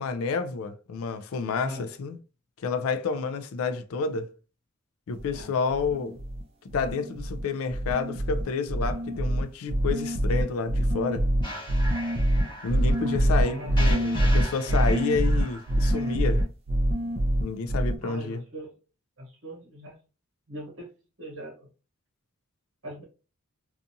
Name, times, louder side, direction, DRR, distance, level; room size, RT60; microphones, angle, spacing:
voice 1, 0.0-2.2 2.6-4.3 5.1-6.1 6.7-11.3 12.6-16.4 17.4-18.4, left 4 dB, 75° left, 0.4 m, -29 dB
sound 1, 5.2-5.4 5.7-6.4 6.7-7.4 7.7-18.0, equal, 25° right, 0.3 m, -25 dB
sound 2, 11.4-16.4, left 1 dB, 20° left, 0.9 m, -40 dB
voice 2, 13.4-13.9 18.0-18.8 19.2-20.0 20.5-20.9 21.2-21.7 22.8-23.0, equal, 65° right, 1.1 m, -40 dB
2.6 x 2.4 x 2.6 m
head